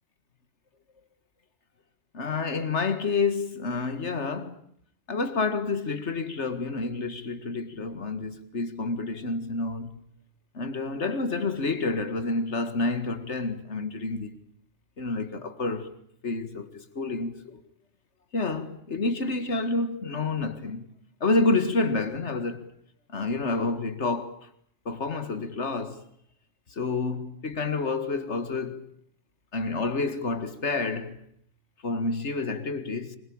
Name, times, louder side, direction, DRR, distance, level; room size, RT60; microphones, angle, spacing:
voice 1, 2.1-4.6 5.1-10.0 10.5-14.4 15.0-16.0 16.2-17.6 18.3-20.8 21.2-22.6 23.1-24.5 24.9-26.0 26.7-28.8 29.5-31.3 31.8-33.2, left 3 dB, 85° left, 2.3 m, -29 dB
24.5 x 23.0 x 8.8 m
omnidirectional pair, 1.1 m